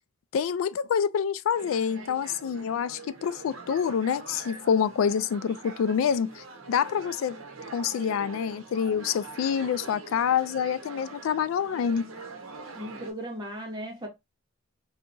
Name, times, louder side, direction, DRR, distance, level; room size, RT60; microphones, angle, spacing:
voice 1, 0.3-7.4 7.7-12.1, left 7 dB, 75° left, 0.3 m, -27 dB
sound 1, 1.5-13.1, right 4 dB, 75° right, 0.8 m, -44 dB
voice 2, 12.7-14.1, equal, 20° right, 1.0 m, -36 dB
3.5 x 2.8 x 2.5 m
head